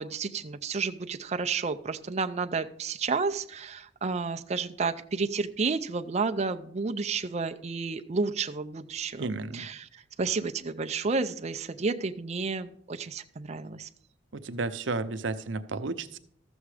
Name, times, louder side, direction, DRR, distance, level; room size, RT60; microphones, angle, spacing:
voice 1, 0.0-9.3 9.5-13.9, right 4 dB, 35° right, 8 dB, 0.5 m, -31 dB
voice 2, 9.2-9.7 14.3-16.2, right 3 dB, 70° right, 11 dB, 0.7 m, -32 dB
13.5 x 7.1 x 4.9 m, 0.65 s
head